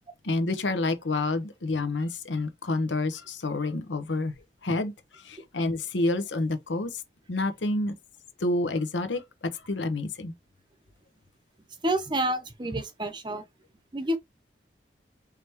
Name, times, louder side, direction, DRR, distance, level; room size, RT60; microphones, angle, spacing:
voice 1, 0.2-4.3 4.6-7.0 7.3-7.9 8.4-9.2 9.5-10.3, left 2 dB, 90° left, 0.9 m, -28 dB
voice 2, 11.8-13.4 13.9-14.2, right 1 dB, 25° right, 0.6 m, -28 dB
4.8 x 3.4 x 2.9 m
head